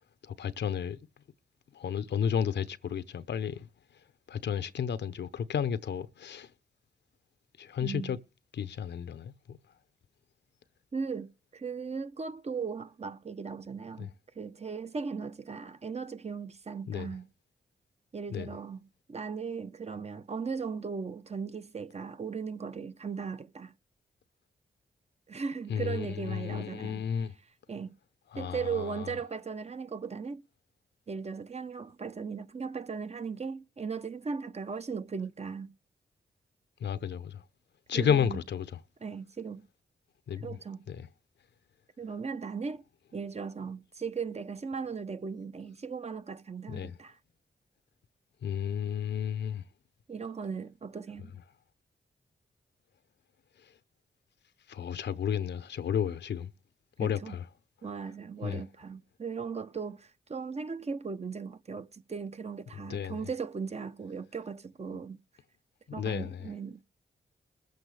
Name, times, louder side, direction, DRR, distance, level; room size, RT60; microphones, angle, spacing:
voice 1, 0.3-1.0 1.7-3.7 4.3-6.5 7.6-8.2 8.5-9.3 14.0-14.1 16.9-17.1 18.3-18.5 25.7-27.3 28.3-29.1 36.8-37.4 37.9-38.7 40.3-40.6 40.9-41.1 46.7-47.0 48.4-49.6 54.7-56.5 57.0-57.4 58.4-58.6 62.9-63.2 66.0-66.4, left 8 dB, 75° left, 0.8 m, -32 dB
voice 2, 7.8-8.2 10.9-17.3 18.1-23.7 25.3-27.0 27.7-27.9 28.4-30.4 31.1-35.7 37.9-38.4 39.0-39.6 40.4-40.8 42.0-42.8 43.1-47.2 50.1-51.3 57.0-57.4 57.8-65.2 65.9-66.8, right 5 dB, 35° right, 0.8 m, -37 dB
21.5 x 7.9 x 3.4 m
cardioid pair, 75°, 18 cm